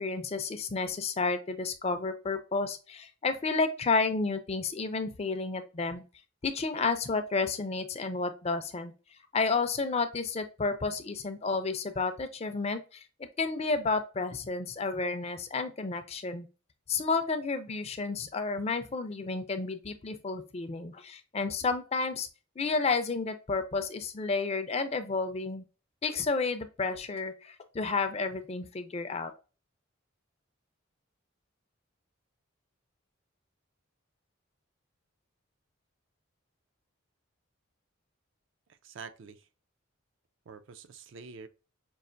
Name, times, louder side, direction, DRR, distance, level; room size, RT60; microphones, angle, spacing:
voice 1, 0.0-6.0 6.4-8.9 9.3-13.0 13.4-16.5 16.9-22.3 22.6-25.6 26.0-29.3, left 4 dB, 30° left, 0.4 m, -31 dB
voice 2, 38.8-39.5 40.5-41.5, right 5 dB, 60° right, 0.4 m, -46 dB
5.4 x 2.4 x 2.5 m
head